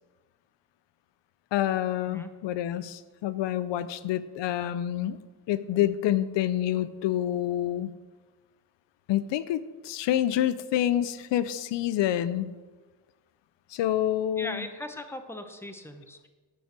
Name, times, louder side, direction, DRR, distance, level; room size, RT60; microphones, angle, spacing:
voice 1, 1.5-5.2 5.5-7.9 9.1-12.5 13.7-14.7, left 12 dB, 75° left, 15 dB, 0.6 m, -27 dB
voice 2, 14.4-16.3, left 1 dB, 5° left, 7 dB, 0.8 m, -39 dB
9.2 x 4.7 x 6.7 m, 1.3 s
cardioid pair, 100°, 43 cm